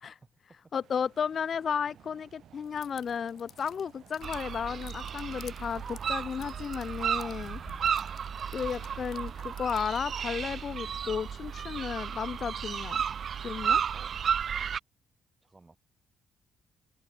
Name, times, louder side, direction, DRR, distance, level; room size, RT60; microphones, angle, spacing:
voice 1, 0.1-0.7 2.4-2.5 8.0-8.2 13.9-14.2 15.4-15.8, right 3 dB, 20° right, 7.3 m, -58 dB
voice 2, 0.7-7.6 8.5-13.0 13.4-13.8, left 7 dB, 50° left, 0.7 m, -33 dB
sound 1, 0.8-6.3, right 11 dB, 70° right, 2.0 m, -59 dB
sound 2, 2.6-10.1, left 10 dB, 65° left, 1.6 m, -52 dB
sound 3, 4.2-14.8, right 7 dB, 55° right, 0.4 m, -33 dB
open air
cardioid pair, 90°, 0 cm